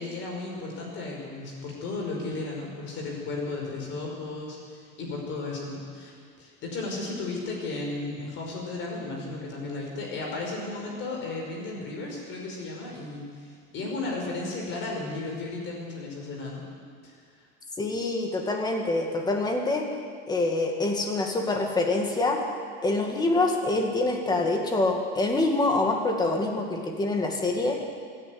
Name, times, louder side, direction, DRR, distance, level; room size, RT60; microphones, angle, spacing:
voice 1, 0.0-6.1 6.4-16.7 17.0-17.2, left 3 dB, 35° left, -1 dB, 5.5 m, -34 dB
voice 2, 17.8-19.8 20.3-22.4 22.8-27.8, left 2 dB, 10° left, 2 dB, 2.1 m, -25 dB
26.0 x 10.5 x 9.6 m, 2.1 s
cardioid pair, 175°, 35 cm